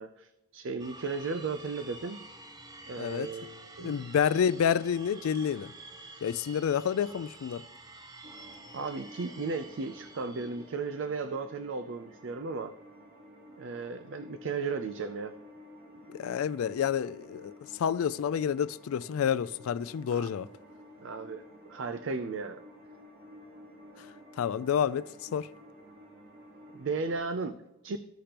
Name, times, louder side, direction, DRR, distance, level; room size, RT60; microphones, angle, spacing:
voice 1, 0.0-2.2 2.9-4.0 8.7-12.7 13.6-15.3 20.1-20.3 21.0-22.6 26.7-28.0, right 4 dB, 65° right, 0.4 m, -35 dB
sound 1, 0.8-10.9, right 2 dB, 20° right, 0.6 m, -49 dB
voice 2, 3.0-3.3 3.8-5.7 6.2-7.6 16.1-17.5 17.8-20.5 24.4-25.1 25.3-25.5, left 8 dB, 90° left, 0.3 m, -29 dB
sound 2, 8.2-27.2, equal, 45° right, 1.7 m, -52 dB
14.5 x 5.1 x 2.9 m
head